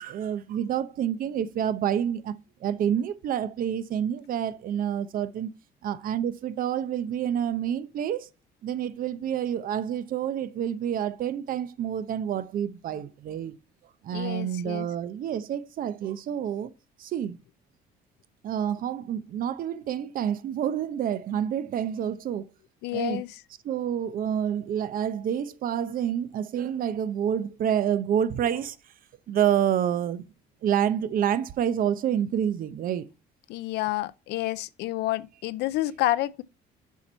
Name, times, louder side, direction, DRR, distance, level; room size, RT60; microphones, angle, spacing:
voice 1, 0.0-5.5 5.8-8.3 8.6-13.5 14.0-16.7 17.0-17.4 18.4-22.5 22.9-23.2 23.6-28.8 29.3-30.2 30.6-33.1, right 9 dB, 55° right, 0.7 m, -28 dB
voice 2, 14.1-14.9 22.8-23.3 33.5-36.4, left 16 dB, 80° left, 0.5 m, -29 dB
7.1 x 4.5 x 5.5 m
cardioid pair, 110°, 17 cm